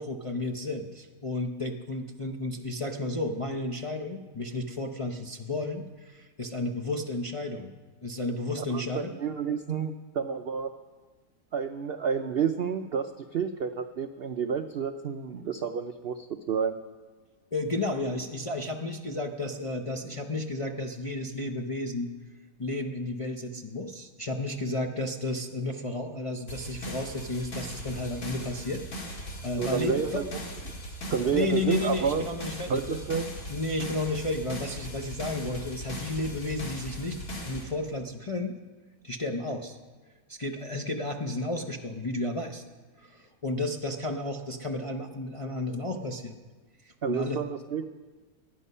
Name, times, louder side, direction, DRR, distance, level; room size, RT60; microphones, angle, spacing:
voice 1, 0.0-9.1 17.5-22.1 22.6-29.1 29.4-30.2 31.3-33.0 33.5-37.2 37.5-38.6 39.0-39.8 40.3-42.6 43.0-46.4 46.8-47.4, left 2 dB, 35° left, 2 dB, 0.5 m, -32 dB
voice 2, 8.7-10.7 11.5-16.8 29.6-30.3 31.1-32.2 32.7-33.3 47.0-47.9, right 6 dB, 85° right, 8 dB, 0.5 m, -30 dB
sound 1, 26.5-37.6, equal, 65° left, 2.7 m, -39 dB
19.0 x 11.5 x 5.5 m, 1.4 s
omnidirectional pair, 1.8 m